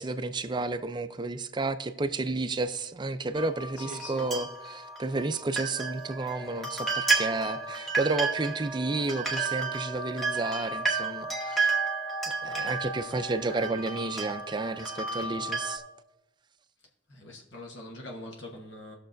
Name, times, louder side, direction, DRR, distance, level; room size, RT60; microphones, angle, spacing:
voice 1, 0.0-11.7 12.4-15.8, right 3 dB, 25° right, 10 dB, 0.4 m, -31 dB
sound 1, 3.3-15.8, right 4 dB, ahead, 1.2 m, -32 dB
voice 2, 3.8-4.3 17.1-19.0, left 1 dB, 70° left, 1 dB, 1.2 m, -43 dB
19.5 x 6.6 x 2.6 m, 0.93 s
head